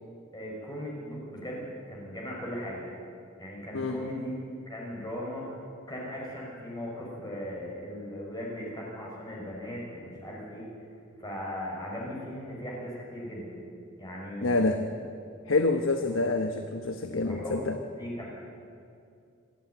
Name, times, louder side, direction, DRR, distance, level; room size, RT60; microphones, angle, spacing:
voice 1, 0.3-2.8 3.4-4.3 4.7-5.4 5.9-10.7 11.2-13.6 14.0-14.7 16.0-16.2 17.2-17.6 18.0-18.3, equal, 20° left, -3 dB, 6.0 m, -38 dB
voice 2, 14.4-14.8 15.5-17.8, left 3 dB, 80° left, 6 dB, 1.1 m, -27 dB
27.0 x 14.5 x 9.4 m, 2.4 s
head